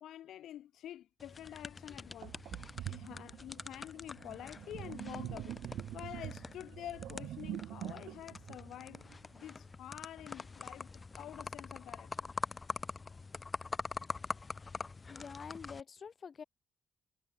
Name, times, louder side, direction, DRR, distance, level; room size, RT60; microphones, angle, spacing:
voice 1, 0.0-2.4 2.8-5.6 5.9-9.0 9.3-12.3, left 12 dB, 75° left, 0.8 m, -48 dB
sound 1, 1.2-15.8, left 4 dB, 30° left, 0.4 m, -45 dB
Sink (filling or washing), 1.5-1.6 2.2-9.5, right 13 dB, 80° right, 0.6 m, -45 dB
voice 2, 15.1-16.4, left 6 dB, 45° left, 1.3 m, -47 dB
cardioid pair, 90°, 0 cm